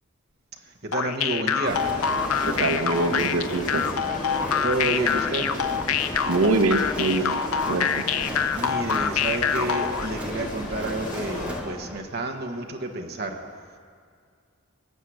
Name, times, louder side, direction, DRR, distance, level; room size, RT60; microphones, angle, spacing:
voice 1, 0.5-1.8 4.3-5.5 8.5-13.4, right 2 dB, 45° right, 3 dB, 1.1 m, -30 dB
sound 1, 0.9-10.1, left 7 dB, 85° left, 0.6 m, -25 dB
sound 2, 1.7-11.6, left 1 dB, 35° left, 1.8 m, -34 dB
Crowd, 1.8-12.0, right 1 dB, 5° right, 0.6 m, -39 dB
voice 2, 2.4-3.9 6.3-7.3 7.7-8.0, right 2 dB, 85° right, 5 dB, 0.8 m, -24 dB
19.0 x 6.5 x 8.4 m, 2.1 s
head